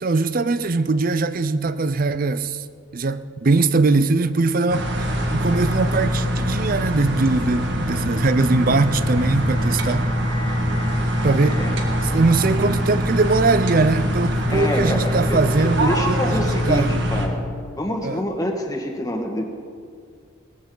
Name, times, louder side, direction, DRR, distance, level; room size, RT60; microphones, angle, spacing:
voice 1, 0.0-2.6 2.9-4.9 5.3-10.1 11.2-11.6 12.0-16.9 18.0-18.2, right 3 dB, 45° right, 0.5 m, -21 dB
sound 1, 4.7-17.3, equal, 60° right, 1.6 m, -23 dB
sound 2, 8.3-15.2, left 1 dB, 85° right, 3.4 m, -41 dB
voice 2, 14.5-17.4 17.8-19.4, equal, 15° left, 1.5 m, -27 dB
18.5 x 14.5 x 3.9 m
head